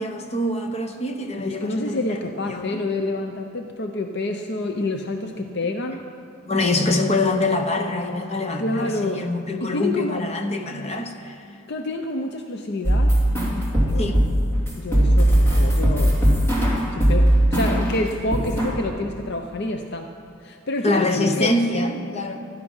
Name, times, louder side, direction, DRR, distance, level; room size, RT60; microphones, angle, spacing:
voice 1, 0.0-2.2 2.5-2.8 6.4-11.4 14.0-14.2 20.8-22.4, left 2 dB, 30° left, 5 dB, 1.0 m, -24 dB
voice 2, 1.4-6.0 8.6-9.3 9.6-10.2 11.7-14.1 14.8-16.3 16.9-20.1 20.4-21.5, left 2 dB, 50° left, 5 dB, 0.7 m, -28 dB
sound 1, 12.8-18.0 18.3-18.7, right 1 dB, 10° left, 2.9 m, -18 dB
14.5 x 13.0 x 5.5 m, 2.5 s
head